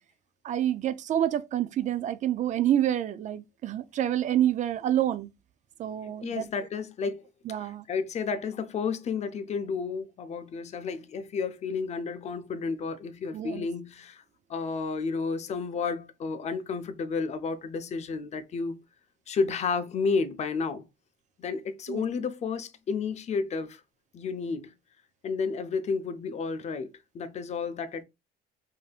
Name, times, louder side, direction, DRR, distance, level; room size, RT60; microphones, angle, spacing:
voice 1, 0.4-5.3 5.8-6.5 7.5-7.8 13.3-13.7 21.9-22.0, right 11 dB, 40° right, 0.4 m, -27 dB
voice 2, 6.2-7.2 7.6-14.2 14.5-18.8 19.3-20.8 21.4-23.8 24.1-24.7 25.2-26.9 27.1-28.0, left 5 dB, 40° left, 0.5 m, -31 dB
5.0 x 2.7 x 2.3 m
cardioid pair, 160°, 18 cm